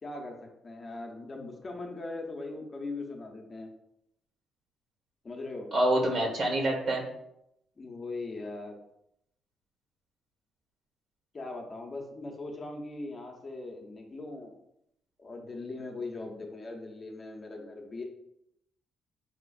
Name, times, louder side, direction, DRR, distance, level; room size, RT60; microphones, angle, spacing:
voice 1, 0.0-3.7 5.2-5.7 7.8-8.8 11.3-14.5 15.2-18.0, left 2 dB, 35° left, 1 dB, 0.7 m, -40 dB
voice 2, 5.7-7.0, right 1 dB, 65° right, 0 dB, 1.2 m, -26 dB
4.9 x 2.4 x 2.4 m, 0.80 s
cardioid pair, 90°, 0 cm